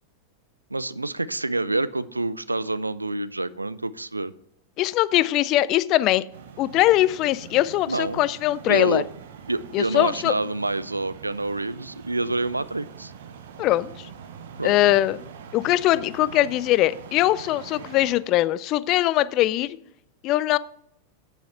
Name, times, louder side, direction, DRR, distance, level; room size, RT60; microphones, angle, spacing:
voice 1, 0.7-4.3 7.9-8.2 8.7-9.0 9.5-13.1 14.6-14.9, right 2 dB, 85° right, 0.3 m, -27 dB
voice 2, 4.8-6.2 6.6-9.0 9.7-10.3 13.6-14.1 14.6-15.2 15.5-19.8 20.2-20.6, left 15 dB, 40° left, 0.3 m, -21 dB
sound 1, 6.3-18.2, right 7 dB, 60° right, 0.9 m, -43 dB
7.9 x 7.0 x 5.5 m
figure-of-eight pair, 90°, 0 cm